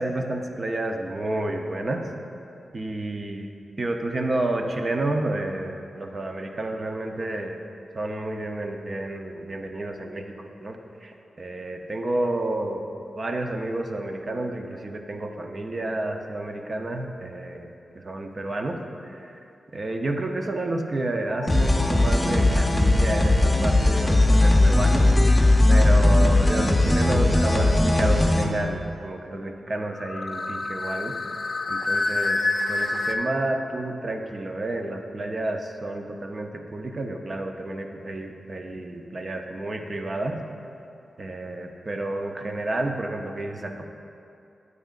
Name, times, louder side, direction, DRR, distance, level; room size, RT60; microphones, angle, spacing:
voice 1, 0.0-2.1 2.7-3.5 3.8-7.6 7.9-12.9 13.1-19.4 19.7-31.2 31.4-40.4 41.2-43.9, right 2 dB, 45° right, 4 dB, 0.6 m, -30 dB
sound 1, 21.3-22.0 26.3-28.3 29.9-33.1, left 2 dB, 50° left, 0.5 m, -29 dB
sound 2, 21.5-28.4, left 2 dB, 20° left, 0.8 m, -18 dB
9.0 x 8.2 x 2.5 m, 2.6 s
cardioid pair, 65°, 0 cm